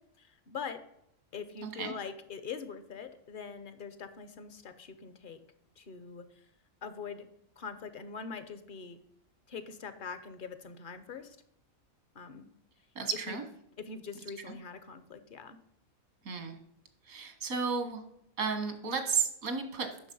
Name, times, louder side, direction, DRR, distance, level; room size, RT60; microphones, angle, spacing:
voice 1, 0.2-0.8 1.3-5.4 5.8-6.4 6.8-7.3 7.6-9.0 9.5-11.4 12.1-12.5 13.3-13.4 13.9-15.6, left 5 dB, 50° left, 11 dB, 0.7 m, -43 dB
voice 2, 1.6-1.9 12.9-13.4 14.5-14.6 16.2-16.6 17.0-18.0 18.4-20.1, right 5 dB, 85° right, 7 dB, 1.7 m, -33 dB
9.1 x 6.0 x 5.3 m, 0.76 s
omnidirectional pair, 1.4 m